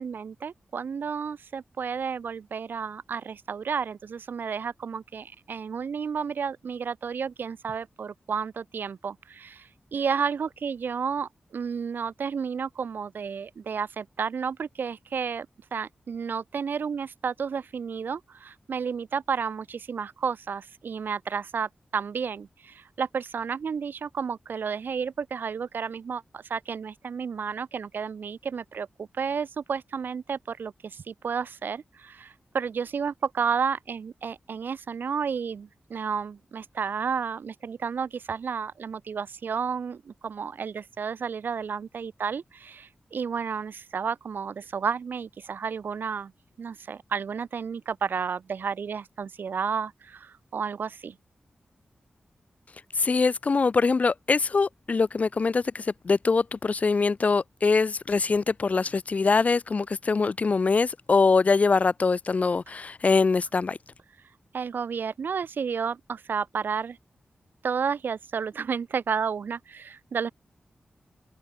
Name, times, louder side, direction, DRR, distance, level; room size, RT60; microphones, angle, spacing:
voice 1, 0.0-15.5 15.7-46.3 46.6-51.2 64.2-67.0 67.6-70.3, right 6 dB, 85° right, 4.6 m, -32 dB
voice 2, 52.9-63.8, left 4 dB, 45° left, 2.4 m, -23 dB
open air
wide cardioid pair, 130°, 3 cm